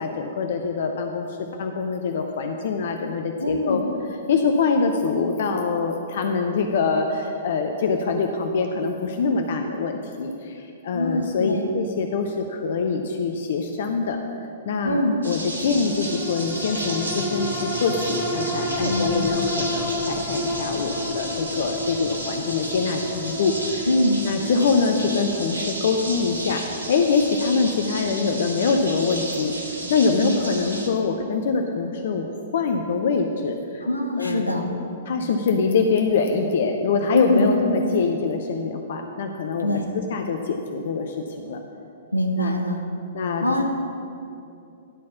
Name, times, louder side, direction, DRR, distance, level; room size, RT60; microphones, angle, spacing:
voice 1, 0.0-3.8 4.3-14.2 14.7-23.9 24.2-32.3 32.5-33.8 34.2-34.5 35.1-41.6 42.4-42.6 43.1-43.4, left 4 dB, 50° left, 4 dB, 0.5 m, -24 dB
voice 2, 3.4-3.8 10.9-11.8 14.8-15.2 18.8-19.3 23.9-24.2 30.2-30.4 33.8-34.7 37.1-37.5 39.6-39.9 42.1-42.8 43.4-43.6, left 1 dB, 85° left, 2 dB, 1.0 m, -23 dB
sound 1, 15.2-30.9, right 1 dB, 75° right, 1.3 m, -33 dB
sound 2, 15.8-30.5 30.9-31.0, left 1 dB, 25° left, 1.3 m, -32 dB
11.0 x 4.2 x 6.9 m, 2.7 s
figure-of-eight pair, 110°, 0 cm